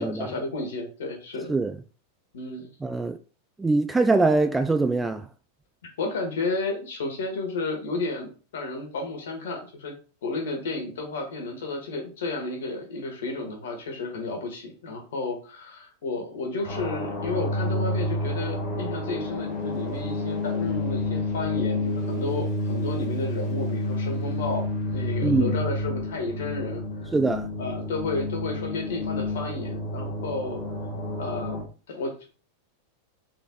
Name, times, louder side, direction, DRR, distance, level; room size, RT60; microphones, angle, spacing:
voice 1, 0.0-1.5 2.3-2.7 6.0-9.9 10.2-27.1 27.6-30.6 31.2-32.3, left 3 dB, 60° left, 1.6 m, -32 dB
voice 2, 2.8-3.2 3.6-5.2 25.2-25.5 27.1-27.5, right 3 dB, 10° right, 0.3 m, -23 dB
sound 1, 16.6-31.6, left 1 dB, 35° left, 1.8 m, -29 dB
4.7 x 4.3 x 2.4 m
figure-of-eight pair, 90°, 0 cm